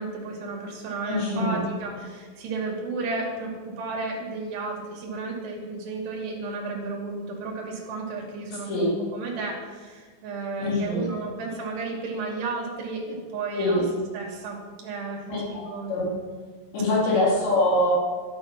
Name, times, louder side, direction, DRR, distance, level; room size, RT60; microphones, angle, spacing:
voice 1, 0.0-13.8 14.1-15.9 17.1-17.4, right 3 dB, 60° right, -2 dB, 4.7 m, -33 dB
voice 2, 1.0-1.7 8.7-8.9 10.6-11.0 13.6-13.8 15.3-15.6 15.9-16.1 16.7-17.9, left 1 dB, 60° left, -6 dB, 6.1 m, -24 dB
12.5 x 11.5 x 6.1 m, 1.5 s
omnidirectional pair, 5.7 m